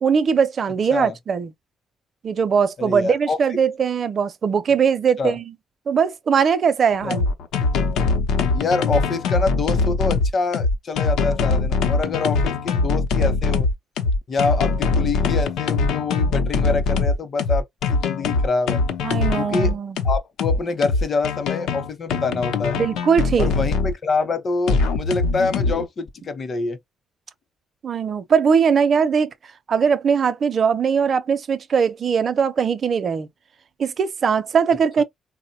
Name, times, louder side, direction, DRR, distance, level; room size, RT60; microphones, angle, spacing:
voice 1, 0.0-1.5 2.2-5.5 5.9-7.3 19.0-20.0 22.7-23.5 27.8-29.3 29.7-33.3 33.8-35.0, right 6 dB, 50° right, 0.5 m, -20 dB
voice 2, 2.8-3.4 5.2-5.4 7.0-7.2 8.5-13.7 14.3-17.6 17.9-18.8 19.4-19.7 20.0-22.8 23.4-26.8, left 4 dB, 45° left, 0.8 m, -25 dB
sound 1, 6.9-23.9 24.7-25.8, left 4 dB, 85° left, 0.7 m, -22 dB
3.7 x 2.2 x 2.7 m
cardioid pair, 90°, 0 cm